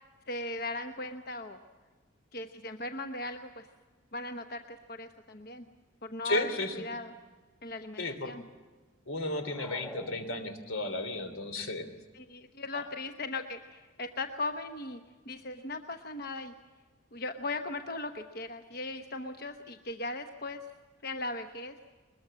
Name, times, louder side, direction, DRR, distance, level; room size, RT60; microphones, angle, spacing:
voice 1, 0.3-1.6 2.3-3.7 4.1-5.6 6.0-7.1 7.6-8.4 12.1-15.0 15.3-16.5 17.1-20.6 21.0-21.8, left 2 dB, 50° left, 6 dB, 1.0 m, -38 dB
voice 2, 6.2-6.8 8.0-8.3 9.1-11.9 12.7-12.8, left 2 dB, 85° left, 8 dB, 3.2 m, -33 dB
sound 1, 9.3-10.9, equal, 10° left, 1.3 m, -47 dB
21.5 x 21.5 x 7.5 m, 1.4 s
head